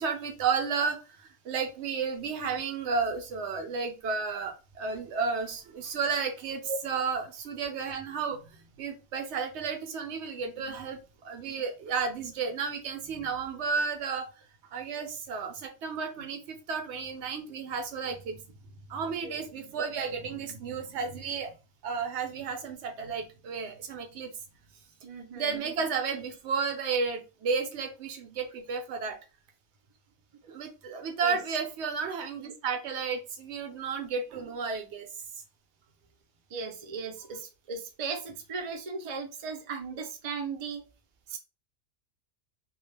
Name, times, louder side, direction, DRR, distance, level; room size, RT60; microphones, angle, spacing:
voice 1, 0.0-14.3 14.7-18.4 18.9-21.5 21.8-24.3 25.4-29.2 30.5-35.1, right 5 dB, 70° right, 6 dB, 0.8 m, -32 dB
voice 2, 25.0-25.6 30.4-30.5 31.2-31.4 36.5-40.8 41.3-41.4, right 4 dB, 45° right, 3 dB, 0.4 m, -37 dB
2.3 x 2.2 x 3.2 m, 0.31 s
omnidirectional pair, 1.2 m